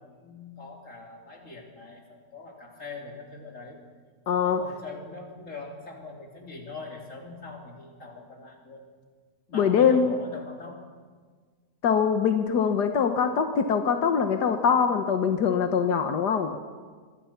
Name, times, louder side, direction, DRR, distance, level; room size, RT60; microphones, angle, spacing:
voice 1, 0.0-3.8 4.3-8.9 9.5-10.9, left 3 dB, 50° left, 0 dB, 3.9 m, -42 dB
voice 2, 4.3-4.6 9.5-10.1 11.8-16.6, left 6 dB, 90° left, 6 dB, 1.7 m, -23 dB
25.0 x 23.0 x 5.9 m, 1.6 s
omnidirectional pair, 1.7 m